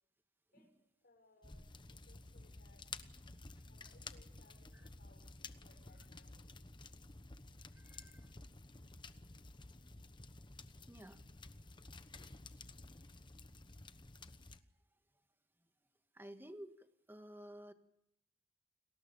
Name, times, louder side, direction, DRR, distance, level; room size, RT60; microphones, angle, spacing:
voice 1, 0.5-2.9 3.7-6.6, left 2 dB, 55° left, 4 dB, 6.9 m, -69 dB
sound 1, 1.4-14.6, left 3 dB, 25° left, 1.0 m, -53 dB
voice 2, 7.7-8.3 10.9-11.2 16.1-17.7, equal, 10° right, 8 dB, 1.6 m, -53 dB
30.0 x 20.0 x 7.0 m, 0.78 s
head